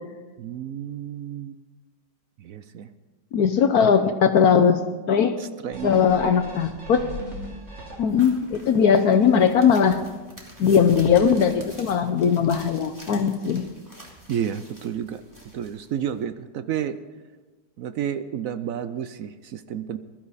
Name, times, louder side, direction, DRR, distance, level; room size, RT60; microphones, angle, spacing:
voice 1, 0.4-1.6 2.4-2.9 5.4-6.5 14.3-15.2 15.5-17.0 17.8-20.0, right 9 dB, 65° right, 11 dB, 0.8 m, -31 dB
voice 2, 3.3-4.8 5.1-5.4 5.8-7.0 8.0-10.0 10.6-13.7, left 7 dB, 65° left, 9 dB, 1.1 m, -19 dB
sound 1, 5.7-8.4 8.9-9.0, equal, 40° right, 3.1 m, -38 dB
sound 2, 8.1-16.2, equal, 10° right, 2.7 m, -46 dB
20.5 x 12.5 x 4.1 m, 1.2 s
omnidirectional pair, 1.9 m